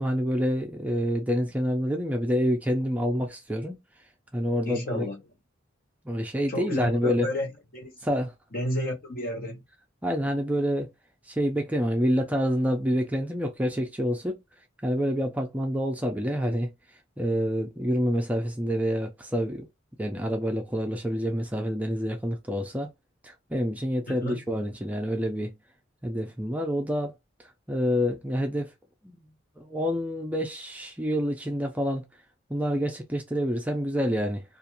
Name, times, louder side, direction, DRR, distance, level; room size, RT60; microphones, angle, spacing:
voice 1, 0.0-3.8 4.3-5.1 6.0-7.3 8.0-8.3 10.0-10.9 11.2-14.4 14.8-16.7 17.2-19.7 20.0-22.9 23.2-25.5 26.0-27.1 27.7-28.7 29.0-29.3 29.6-32.1 32.5-34.4, equal, 10° right, 0.4 m, -27 dB
voice 2, 4.6-5.2 6.5-7.9 8.5-9.6 24.1-24.4, left 1 dB, 50° left, 1.0 m, -31 dB
2.4 x 2.4 x 2.9 m
head